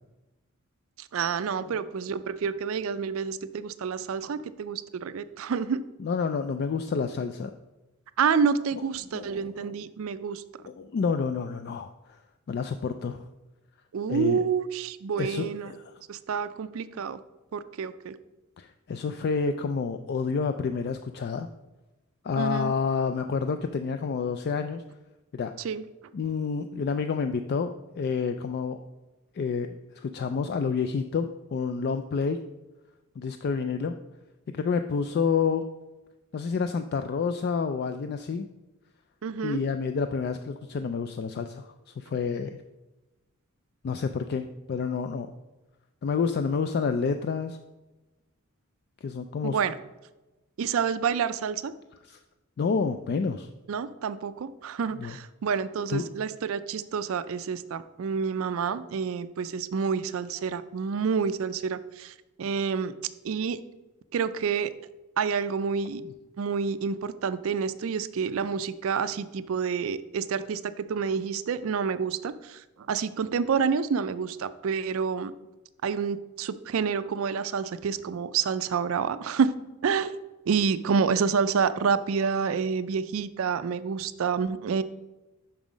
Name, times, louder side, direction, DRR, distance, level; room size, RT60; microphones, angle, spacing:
voice 1, 1.0-5.8 8.2-10.4 13.9-15.7 16.1-17.2 17.5-18.2 22.4-22.7 25.6-25.8 39.2-39.6 49.4-49.7 50.6-51.7 53.7-62.9 63.2-63.6 64.1-64.7 65.2-66.0 66.4-75.3 75.8-79.5 79.8-80.1 80.5-84.8, right 6 dB, 65° right, 13 dB, 0.4 m, -28 dB
voice 2, 6.0-7.5 9.1-9.7 10.6-12.2 12.5-13.2 14.1-14.4 15.2-15.9 18.6-21.5 22.2-24.8 25.3-25.5 26.1-28.8 29.3-32.4 33.2-33.9 34.5-35.6 36.3-38.5 39.4-42.6 43.8-45.3 46.0-47.6 49.0-49.6 52.0-52.2 52.6-53.5 55.0-55.2 55.9-56.1, left 5 dB, 45° left, 8 dB, 0.3 m, -29 dB
6.0 x 5.6 x 5.0 m, 1.1 s
head